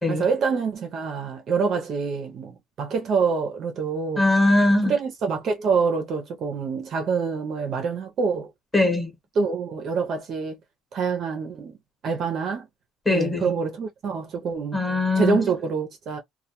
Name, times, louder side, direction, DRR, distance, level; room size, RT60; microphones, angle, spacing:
voice 1, 0.1-4.2 4.8-8.5 9.4-10.6 10.9-11.8 12.0-12.7 13.1-14.8 15.2-16.2, right 5 dB, 35° right, 0.4 m, -26 dB
voice 2, 4.2-4.9 8.7-9.1 13.1-13.5 14.7-15.4, left 2 dB, 10° left, 0.9 m, -21 dB
2.1 x 2.1 x 2.8 m
cardioid pair, 175°, 0 cm